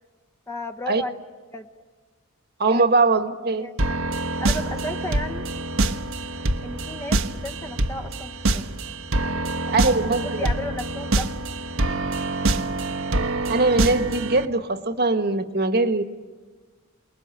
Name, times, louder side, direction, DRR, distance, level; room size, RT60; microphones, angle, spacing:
voice 1, 0.5-1.2 1.5-1.7 2.7-2.9 3.5-4.1 4.4-5.4 6.6-8.6 9.2-9.9 10.2-11.3, left 1 dB, 15° left, 1.1 m, -35 dB
voice 2, 2.6-3.7 9.7-10.5 13.5-16.0, right 3 dB, 50° right, 1.5 m, -21 dB
sound 1, 3.8-14.5, right 2 dB, 80° right, 1.3 m, -25 dB
28.5 x 21.0 x 9.1 m
head